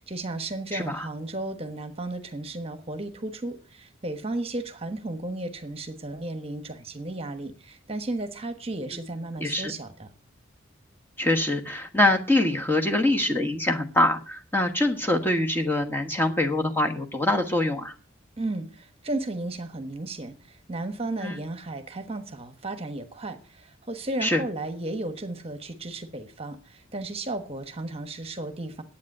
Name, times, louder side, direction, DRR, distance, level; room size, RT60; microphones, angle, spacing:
voice 1, 0.0-10.1 18.4-28.8, right 2 dB, 30° right, 8 dB, 1.2 m, -34 dB
voice 2, 0.7-1.1 9.4-9.7 11.2-17.9 21.2-21.4 24.2-24.4, left 1 dB, 10° left, 3 dB, 1.3 m, -24 dB
10.5 x 8.8 x 6.6 m, 0.38 s
head